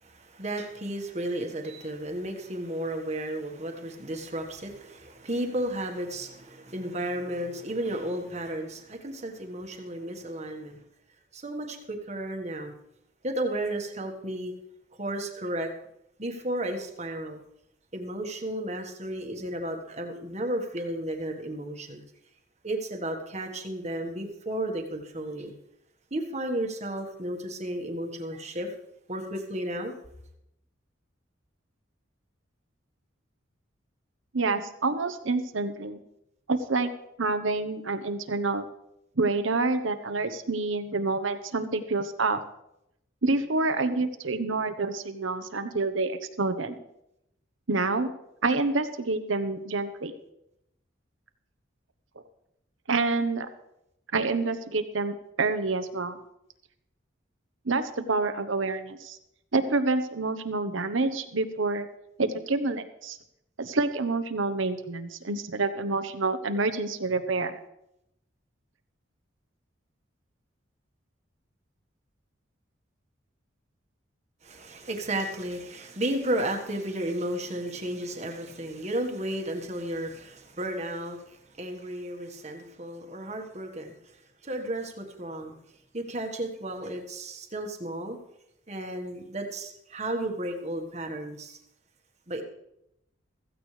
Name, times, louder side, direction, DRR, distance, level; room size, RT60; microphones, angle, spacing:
voice 1, 0.0-10.8 11.3-12.7 13.2-14.5 15.0-15.7 16.2-17.4 17.9-22.0 22.6-25.5 26.1-28.7 29.1-29.9 74.4-83.9 84.4-85.5 85.9-88.2 88.7-91.6 92.3-92.4, right 1 dB, 35° right, 4 dB, 1.5 m, -33 dB
voice 2, 34.3-36.0 36.5-36.9 37.2-38.6 39.2-42.4 43.2-46.8 47.7-48.1 48.4-50.1 52.9-53.5 54.1-56.2 57.6-59.2 59.5-61.9 62.2-63.2 63.6-67.5, right 3 dB, 85° right, 9 dB, 1.1 m, -27 dB
15.5 x 15.0 x 3.3 m, 0.82 s
head